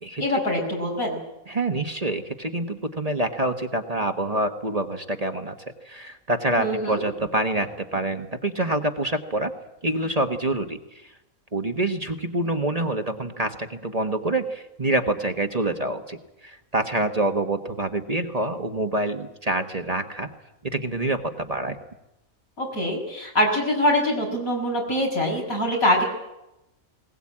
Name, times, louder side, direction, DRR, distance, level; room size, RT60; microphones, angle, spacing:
voice 1, 0.2-1.2 6.6-7.0 22.6-26.0, equal, 85° left, 0 dB, 6.4 m, -24 dB
voice 2, 1.5-5.5 5.8-9.5 9.8-11.1 11.5-20.3 20.6-21.8, right 2 dB, 30° right, 5 dB, 1.3 m, -26 dB
20.5 x 19.0 x 8.7 m, 0.91 s
omnidirectional pair, 1.4 m